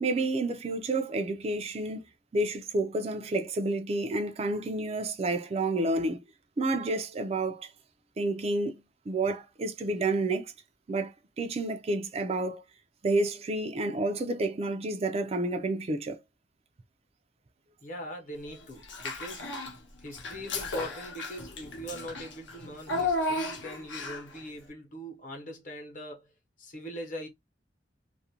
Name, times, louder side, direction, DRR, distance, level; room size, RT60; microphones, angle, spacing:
voice 1, 0.0-2.1 2.3-6.2 6.6-7.7 8.2-8.8 9.1-10.5 10.9-12.6 13.0-16.2, right 2 dB, 35° right, 0.4 m, -30 dB
voice 2, 17.8-19.5 20.0-26.3 26.6-27.3, equal, 45° left, 0.8 m, -41 dB
Child speech kid speaking / Bathtub (filling or washing), 18.8-19.8 20.1-24.4, left 2 dB, 75° left, 0.8 m, -34 dB
2.4 x 2.1 x 2.8 m
head